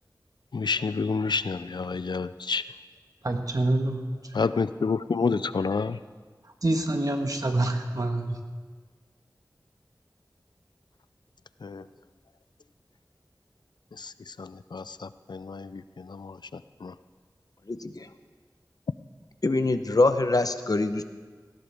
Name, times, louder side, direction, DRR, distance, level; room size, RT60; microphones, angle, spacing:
voice 1, 0.5-2.6 4.3-6.0 11.6-11.8 14.0-14.1 14.4-16.4 16.8-16.9, left 4 dB, 80° left, 14 dB, 0.4 m, -29 dB
voice 2, 3.2-4.0 6.6-8.3, right 2 dB, 55° right, 4 dB, 1.5 m, -26 dB
voice 3, 17.7-18.1 19.4-21.0, left 2 dB, 55° left, 9 dB, 0.8 m, -24 dB
18.5 x 17.0 x 3.5 m, 1.5 s
wide cardioid pair, 60°, 7 cm